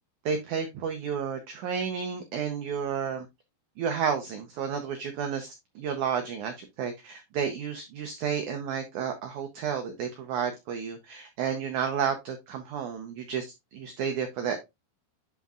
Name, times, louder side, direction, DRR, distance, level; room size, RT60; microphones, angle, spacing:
voice 1, 0.2-3.3 3.8-13.5 13.7-14.7, right 7 dB, 90° right, 6 dB, 1.7 m, -31 dB
10.5 x 4.2 x 2.4 m, 0.22 s
omnidirectional pair, 4.6 m